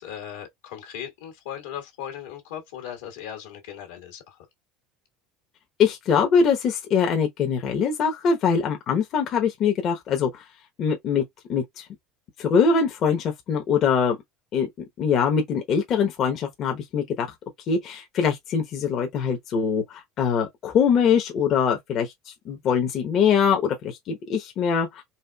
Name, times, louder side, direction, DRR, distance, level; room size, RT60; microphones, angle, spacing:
voice 1, 0.0-4.4, left 9 dB, 80° left, 1.6 m, -38 dB
voice 2, 5.8-10.4 10.8-11.2 11.5-11.9 12.4-14.2 14.5-14.7 15.0-17.3 17.7-25.0, left 6 dB, 50° left, 1.0 m, -23 dB
4.3 x 2.5 x 2.3 m
hypercardioid pair, 85°, 0 cm